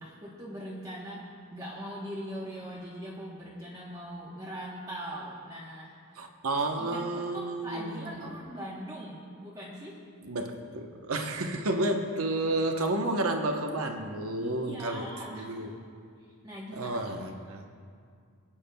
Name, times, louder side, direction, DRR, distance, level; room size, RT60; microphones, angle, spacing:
voice 1, 0.0-6.0 6.8-10.0 14.4-15.7 16.2-17.2, equal, 15° right, -6 dB, 1.0 m, -41 dB
voice 2, 6.2-8.3 10.2-15.0 15.3-15.7 16.7-17.6, right 2 dB, 80° right, 4 dB, 0.9 m, -31 dB
25.0 x 8.6 x 2.3 m, 2.2 s
head